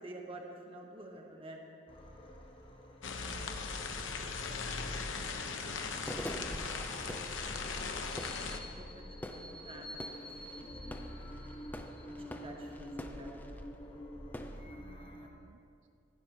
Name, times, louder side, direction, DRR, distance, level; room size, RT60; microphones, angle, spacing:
voice 1, 0.0-1.6 6.4-7.0 7.7-7.9 8.4-8.8 9.3-10.1 10.4-11.0 11.4-11.7 12.2-13.3, right 1 dB, 30° right, 0 dB, 1.6 m, -49 dB
sound 1, 1.9-15.3, equal, 30° left, 1.2 m, -48 dB
sound 2, 2.7-2.8 3.1-14.6, equal, 10° left, 0.5 m, -47 dB
umbrella under rain, 3.0-8.6, left 4 dB, 85° left, 0.9 m, -39 dB
voice 2, 3.8-4.3 4.5-5.6 14.7-15.9, right 5 dB, 70° right, 9 dB, 0.4 m, -62 dB
16.0 x 15.5 x 3.0 m, 2.4 s
head